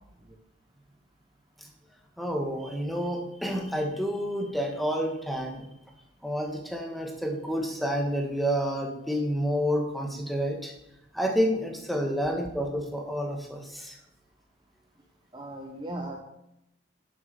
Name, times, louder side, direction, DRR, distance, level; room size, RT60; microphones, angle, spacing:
voice 1, 2.2-5.7 6.2-10.7 11.1-14.0, equal, ahead, 1 dB, 1.6 m, -29 dB
voice 2, 15.3-16.2, right 1 dB, 20° right, 2 dB, 0.9 m, -37 dB
11.0 x 7.3 x 5.3 m, 0.84 s
head